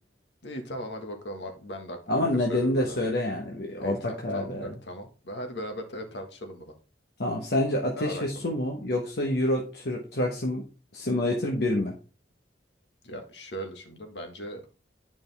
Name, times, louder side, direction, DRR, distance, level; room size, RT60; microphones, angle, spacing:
voice 1, 0.4-2.2 2.5-3.0 3.8-6.7 7.9-8.4 13.0-14.7, equal, 85° left, 4 dB, 1.6 m, -38 dB
voice 2, 2.1-4.7 7.2-10.6 10.9-11.9, left 1 dB, 65° left, -1 dB, 1.1 m, -27 dB
9.3 x 5.1 x 3.4 m, 0.34 s
head